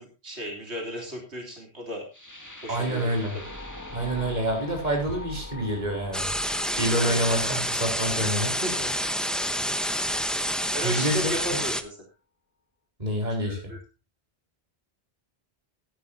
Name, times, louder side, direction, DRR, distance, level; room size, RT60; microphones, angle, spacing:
voice 1, 0.0-2.1 2.6-3.5 7.0-7.6 8.6-8.9 10.7-12.0 13.4-13.8, equal, 85° right, 1 dB, 3.7 m, -35 dB
sound 1, 2.1-10.2, left 2 dB, 15° left, 2.4 m, -43 dB
voice 2, 2.7-3.3 3.9-6.3 6.8-8.5 10.8-11.4 13.0-13.7, right 1 dB, 40° right, 0 dB, 4.5 m, -27 dB
sound 2, 6.1-11.8, equal, ahead, 0.9 m, -28 dB
17.5 x 10.5 x 2.8 m, 0.28 s
omnidirectional pair, 1.1 m